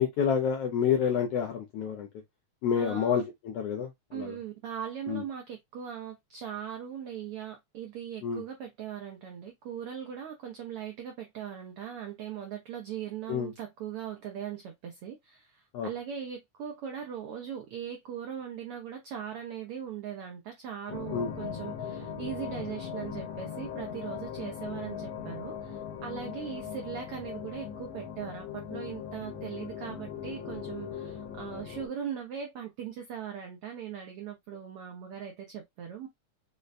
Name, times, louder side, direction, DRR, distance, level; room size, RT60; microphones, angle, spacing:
voice 1, 0.0-2.1 2.6-4.3 5.1-5.2 8.2-8.4 13.3-13.5 15.7-15.9 21.1-21.3, left 7 dB, 80° left, 1.4 m, -28 dB
voice 2, 2.7-3.2 4.1-36.1, right 8 dB, 85° right, 1.2 m, -39 dB
sound 1, 20.9-31.9, left 8 dB, 65° left, 1.8 m, -39 dB
5.1 x 2.1 x 2.4 m
omnidirectional pair, 3.4 m